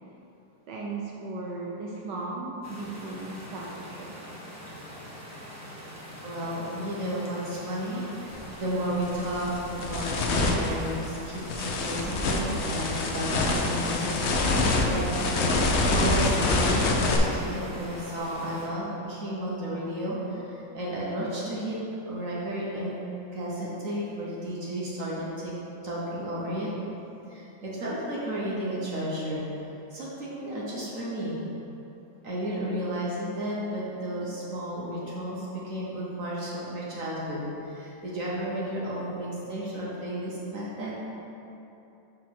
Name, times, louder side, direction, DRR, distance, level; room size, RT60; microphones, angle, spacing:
voice 1, 0.7-4.1, right 3 dB, 75° right, -2 dB, 1.3 m, -36 dB
sound 1, 2.6-18.7, equal, 15° right, 0.8 m, -43 dB
voice 2, 6.2-15.3 15.9-21.8 22.1-23.0 23.3-25.5 25.8-26.7 27.3-29.6 29.9-31.4 32.2-41.0, right 1 dB, 50° right, -6 dB, 1.3 m, -33 dB
sound 2, 8.3-8.5 9.0-17.2, left 2 dB, 70° left, 0.6 m, -26 dB
6.2 x 4.1 x 6.1 m, 3.0 s
omnidirectional pair, 2.0 m